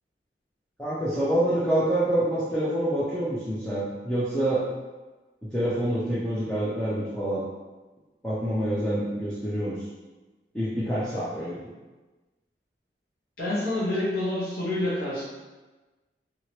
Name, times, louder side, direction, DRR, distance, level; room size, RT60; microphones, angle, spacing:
voice 1, 0.8-4.7 5.4-7.4 8.2-9.8 10.5-11.6, right 1 dB, 5° left, -11 dB, 0.5 m, -26 dB
voice 2, 13.4-15.2, left 1 dB, 55° left, -9 dB, 1.2 m, -27 dB
3.0 x 2.8 x 3.0 m, 1.2 s
head